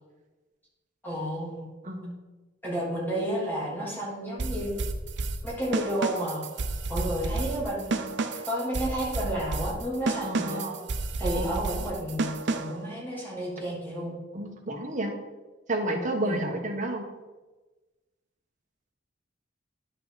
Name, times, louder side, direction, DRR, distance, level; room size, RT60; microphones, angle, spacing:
voice 1, 1.0-1.7 2.6-4.7 5.4-6.4 6.9-8.1 8.5-10.6 11.2-14.2 16.2-16.4, right 1 dB, 10° left, -6 dB, 3.0 m, -31 dB
sound 1, 4.4-12.9, right 3 dB, 65° right, 0.7 m, -31 dB
voice 2, 10.2-10.8 11.2-11.7 14.3-15.1 15.7-17.0, right 1 dB, 40° right, 1 dB, 1.4 m, -31 dB
10.5 x 5.7 x 4.1 m, 1.2 s
head